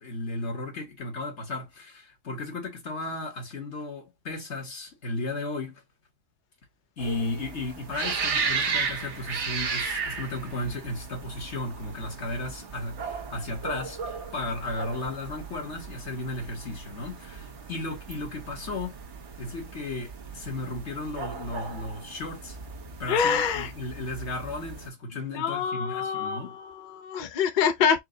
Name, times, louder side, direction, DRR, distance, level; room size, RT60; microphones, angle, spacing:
voice 1, 0.0-5.8 7.0-19.0 19.4-22.6 23.0-26.6, left 2 dB, 70° left, 1.7 m, -35 dB
sound 1, 7.0-24.9, right 5 dB, 75° right, 1.3 m, -35 dB
voice 2, 23.1-23.7 25.1-28.0, left 7 dB, 55° left, 0.6 m, -26 dB
4.7 x 2.1 x 3.8 m
omnidirectional pair, 1.2 m